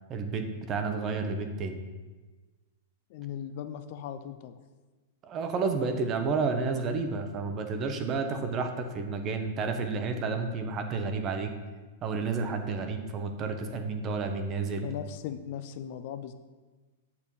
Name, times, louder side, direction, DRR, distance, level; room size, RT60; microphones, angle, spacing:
voice 1, 0.1-1.8 5.2-11.5 12.0-14.9, right 4 dB, 25° right, 6 dB, 0.8 m, -31 dB
voice 2, 3.1-4.6 14.8-16.3, left 9 dB, 45° left, 10 dB, 0.5 m, -38 dB
8.5 x 4.3 x 7.0 m, 1.3 s
supercardioid pair, 165°, 0 cm